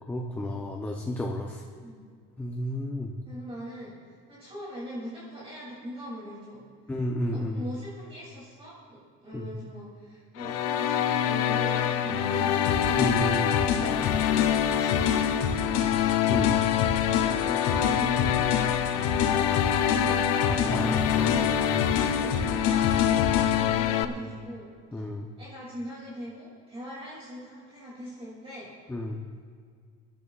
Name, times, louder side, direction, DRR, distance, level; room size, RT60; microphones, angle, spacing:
voice 1, 0.1-1.6 2.4-3.1 6.9-7.7 9.3-9.5 13.0-13.6 16.3-16.6 20.5-21.8 24.9-25.3 28.9-29.2, left 1 dB, 5° left, 1 dB, 0.6 m, -31 dB
voice 2, 3.2-3.9 4.3-6.6 7.3-13.1 13.6-14.1 14.7-15.7 16.7-18.6 19.3-21.5 22.2-24.7 24.9-25.0 25.4-28.7, equal, 20° right, -7 dB, 2.7 m, -41 dB
sound 1, 10.4-24.0, left 10 dB, 60° left, 0.8 m, -25 dB
sound 2, 12.6-23.6, left 6 dB, 80° left, 2.4 m, -30 dB
25.0 x 12.5 x 2.4 m, 2.1 s
cardioid pair, 175°, 29 cm